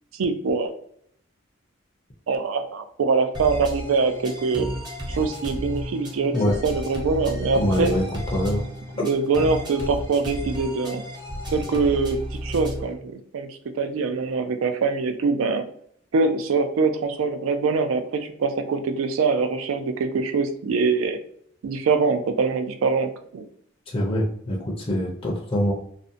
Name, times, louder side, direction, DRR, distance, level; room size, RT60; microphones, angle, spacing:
voice 1, 0.1-0.7 2.3-4.7 5.1-6.4 6.6-7.9 9.0-11.0 11.5-15.7 16.1-21.2 21.6-23.5, right 4 dB, 90° right, 8 dB, 0.4 m, -24 dB
sound 1, 3.3-12.9, equal, 20° right, 0.6 m, -32 dB
voice 2, 7.5-8.0 8.3-8.6 23.9-25.7, equal, 25° left, -2 dB, 0.4 m, -24 dB
2.5 x 2.1 x 2.5 m, 0.64 s
head